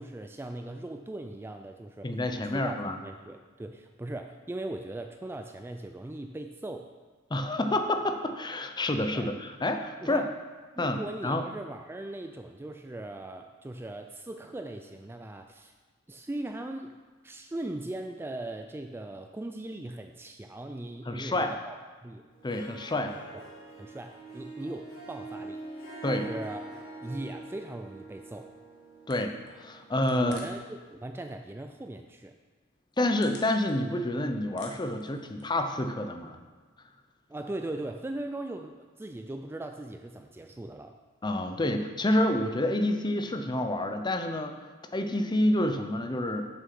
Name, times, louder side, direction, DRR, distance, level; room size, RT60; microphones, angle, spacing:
voice 1, 0.0-2.2 2.5-2.8 3.0-6.9 9.1-9.3 10.0-10.3 10.8-15.7 16.1-17.0 17.2-22.3 23.3-23.5 23.8-26.7 27.0-28.5 30.1-32.4 37.3-41.0, right 1 dB, 10° right, 5 dB, 0.3 m, -39 dB
voice 2, 2.0-3.0 7.3-10.3 10.8-11.4 21.1-21.6 22.4-23.2 26.0-26.2 29.1-30.4 33.0-36.4 41.2-44.5 44.9-46.5, left 1 dB, 20° left, 6 dB, 0.6 m, -28 dB
Harp, 22.3-30.9, right 2 dB, 90° left, 2.3 m, -44 dB
sound 1, 29.1-30.7 31.0-31.6 32.1-32.2 32.7-34.1 34.4-35.7, left 3 dB, 60° left, 1.4 m, -51 dB
7.5 x 6.1 x 6.0 m, 1.4 s
head